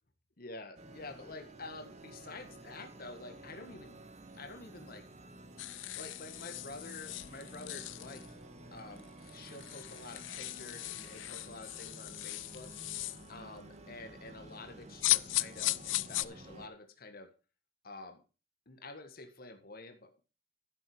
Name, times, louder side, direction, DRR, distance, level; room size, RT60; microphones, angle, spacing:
voice 1, 0.4-4.0 4.3-5.1 5.9-8.4 8.7-13.0 13.3-17.3 17.8-18.2 18.6-20.2, left 3 dB, 50° left, 7 dB, 1.6 m, -49 dB
sound 1, 0.8-16.7, right 1 dB, 35° right, 1.4 m, -52 dB
sound 2, 5.6-8.3 9.0-9.1 9.3-13.3 15.0-16.2, left 18 dB, 75° left, 0.4 m, -37 dB
11.5 x 7.6 x 4.9 m, 0.33 s
head